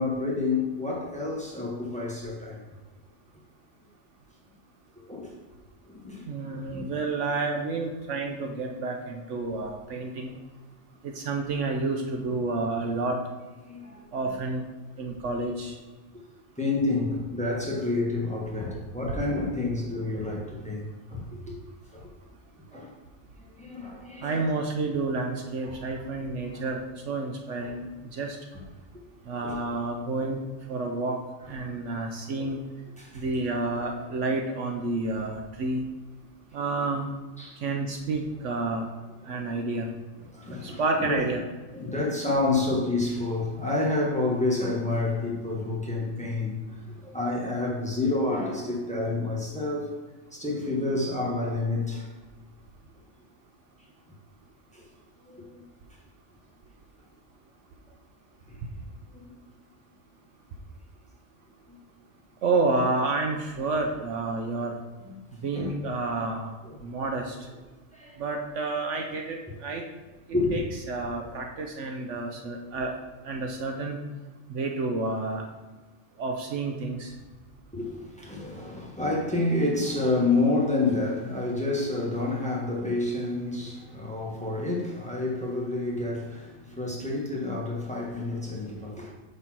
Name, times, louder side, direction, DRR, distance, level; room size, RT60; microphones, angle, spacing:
voice 1, 0.0-2.6 5.0-5.3 5.8-6.9 13.7-14.0 16.6-21.5 21.9-22.1 22.7-22.9 23.6-24.3 25.6-25.8 27.6-27.7 29.4-29.6 31.6-31.8 32.4-32.5 33.0-33.2 37.4-37.6 38.4-38.6 39.2-39.3 40.3-41.2 41.7-46.6 47.0-49.9 50.3-52.1 54.7-54.8 55.2-55.6 61.7-61.8 65.4-65.7 66.6-67.1 67.9-68.2 70.3-70.6 77.7-89.1, left 2 dB, 5° left, 1.2 m, -29 dB
voice 2, 6.3-10.4 11.0-13.2 14.1-14.6 15.0-15.8 24.2-28.4 29.3-30.4 30.7-31.2 31.5-32.6 33.1-35.8 36.5-37.1 37.6-38.9 39.3-39.9 40.6-41.4 62.4-64.8 65.4-66.5 66.8-67.4 68.2-69.8 70.5-70.6 70.9-73.0 73.2-74.0 74.5-75.4 76.2-77.1, right 3 dB, 65° right, 1.0 m, -29 dB
5.4 x 4.1 x 6.0 m
omnidirectional pair, 1.4 m